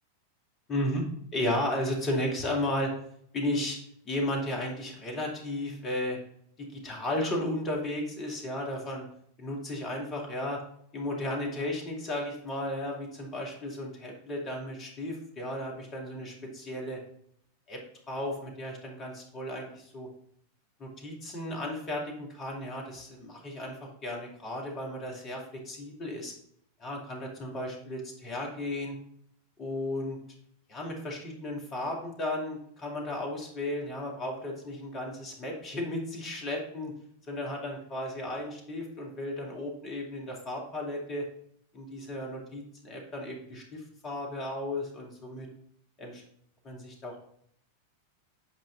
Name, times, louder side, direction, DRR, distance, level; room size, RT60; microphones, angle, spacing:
voice 1, 0.7-1.1 1.3-2.9 3.3-3.8 4.0-6.2 6.6-9.1 9.4-10.6 10.9-17.0 17.7-17.8 18.1-20.1 20.8-23.8 24.0-26.3 26.8-29.0 29.6-30.2 30.7-36.9 37.3-41.3 41.7-45.5 46.0-46.2 46.6-47.2, left 1 dB, 30° left, 0 dB, 2.4 m, -34 dB
8.5 x 5.1 x 3.8 m, 0.69 s
figure-of-eight pair, 90°, 0 cm